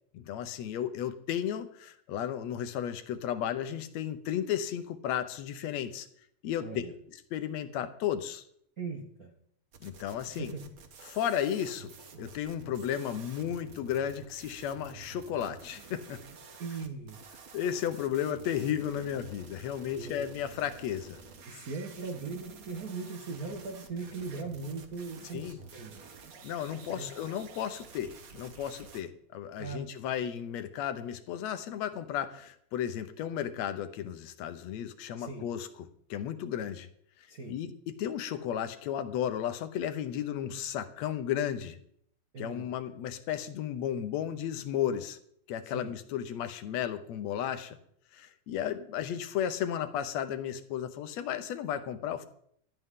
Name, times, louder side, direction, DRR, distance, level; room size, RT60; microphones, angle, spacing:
voice 1, 0.1-6.1 6.4-6.9 7.3-8.4 9.8-10.5 11.1-11.9 12.2-16.2 17.5-21.2 25.3-25.6 26.4-35.7 36.1-36.9 37.5-41.8 42.4-45.2 45.5-47.8 48.1-52.3, left 10 dB, 70° left, 10 dB, 2.0 m, -34 dB
voice 2, 6.6-6.9 8.8-9.4 10.4-10.7 16.6-17.2 19.9-20.1 21.4-26.0 26.9-27.1 29.6-29.9 35.2-35.5 37.3-37.6 42.3-42.7 45.6-45.9, right 4 dB, 50° right, 2 dB, 1.1 m, -39 dB
sound 1, 9.7-29.0, right 5 dB, 80° right, 0.8 m, -51 dB
16.5 x 12.5 x 3.7 m, 0.69 s
omnidirectional pair, 3.4 m